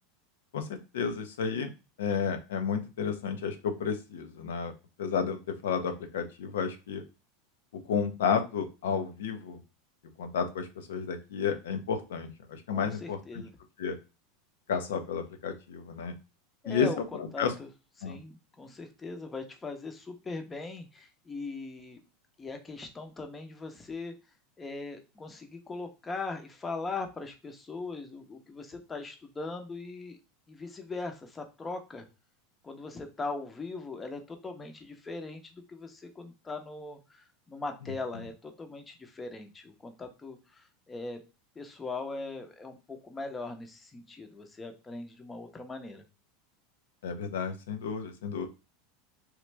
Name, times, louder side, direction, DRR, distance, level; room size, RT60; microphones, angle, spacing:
voice 1, 0.5-1.7 2.0-4.7 5.0-7.0 7.7-9.6 10.2-13.4 13.8-14.0 14.7-16.1 16.7-17.5 18.0-18.2 38.1-38.2 47.0-48.5, left 6 dB, 85° left, 8 dB, 0.7 m, -32 dB
voice 2, 12.7-13.5 16.6-17.7 18.0-22.0 22.4-24.1 24.6-30.2 30.5-32.1 32.6-41.2 41.6-46.0, left 3 dB, 20° left, 6 dB, 0.7 m, -40 dB
3.1 x 2.4 x 3.3 m, 0.29 s
hypercardioid pair, 110°, 0 cm